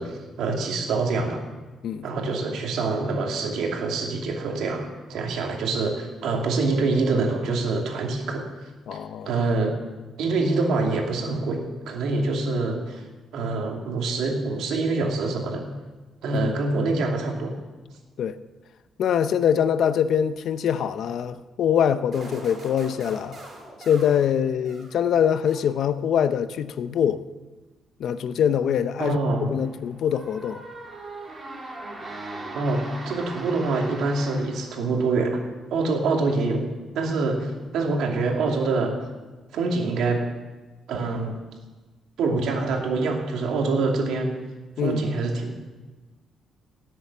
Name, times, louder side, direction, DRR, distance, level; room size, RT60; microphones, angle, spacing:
voice 1, 0.0-1.4 2.0-8.4 9.3-9.7 10.2-13.0 13.3-15.6 16.2-17.5 29.0-29.5 32.5-35.4 35.7-36.6 36.9-38.9 39.5-40.2 40.9-41.3 42.2-44.3 44.8-45.5, right 3 dB, 80° right, 2.6 m, -25 dB
voice 2, 8.9-9.3 16.3-16.5 18.2-18.4 19.0-23.4 23.9-27.2 28.0-29.2 29.5-30.6 44.8-45.0, left 8 dB, 65° left, 0.7 m, -23 dB
sound 1, 22.1-25.1 25.4-26.1, right 1 dB, 45° right, 5.3 m, -43 dB
sound 2, 29.6-34.9, right 2 dB, 25° right, 2.6 m, -39 dB
18.0 x 7.8 x 7.1 m
cardioid pair, 135°, 0 cm